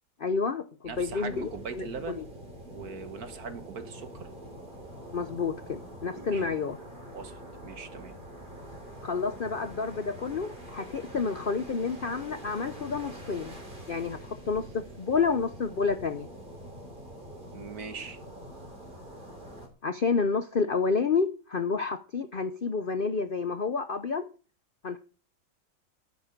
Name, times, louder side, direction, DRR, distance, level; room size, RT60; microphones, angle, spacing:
voice 1, 0.2-1.5 1.7-1.9 5.1-6.8 9.0-13.5 13.9-16.3 19.8-24.3 24.8-25.0, left 5 dB, 75° left, 0.5 m, -29 dB
sound 1, 0.9-19.7, equal, 25° right, 3.5 m, -45 dB
voice 2, 0.9-2.3 2.7-4.3 6.2-6.5 7.1-8.1 11.0-11.1 17.5-18.2, right 5 dB, 50° right, 1.8 m, -40 dB
13.0 x 9.0 x 6.6 m
omnidirectional pair, 2.1 m